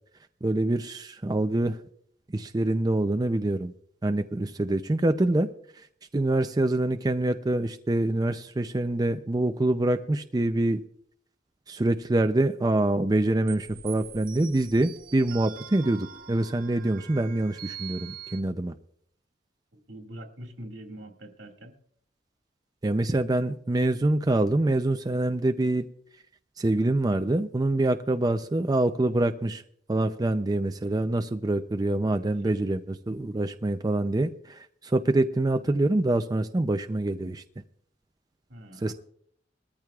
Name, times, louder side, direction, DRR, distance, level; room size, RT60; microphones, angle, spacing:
voice 1, 0.4-1.8 2.3-3.7 4.0-5.5 6.1-10.8 11.7-18.7 22.8-25.8 26.6-29.6 29.9-37.4 38.8-38.9, right 2 dB, 20° right, 7 dB, 0.5 m, -25 dB
sound 1, 13.5-18.4, right 9 dB, 50° right, 0.7 m, -44 dB
voice 2, 19.7-21.7 32.0-32.6 38.5-38.9, right 1 dB, 80° right, 2 dB, 2.1 m, -44 dB
20.5 x 13.5 x 2.4 m, 0.65 s
head